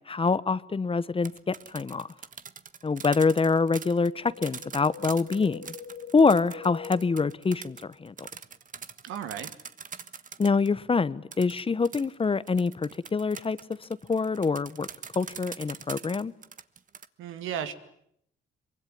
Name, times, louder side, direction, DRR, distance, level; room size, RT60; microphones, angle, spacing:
voice 1, 0.1-2.1 2.8-5.7 6.1-8.3 10.4-13.6 14.1-14.9 15.1-16.3, left 4 dB, 25° left, 17 dB, 1.0 m, -25 dB
sound 1, 1.1-10.7 11.3-17.1, right 6 dB, 40° right, 1.4 m, -43 dB
Wind, 3.6-7.9 8.2-8.3, left 6 dB, 55° left, 2.3 m, -45 dB
voice 2, 9.0-9.5 17.2-17.7, right 9 dB, 85° right, 10 dB, 2.3 m, -34 dB
24.5 x 23.0 x 9.4 m, 0.72 s
cardioid pair, 90°, 20 cm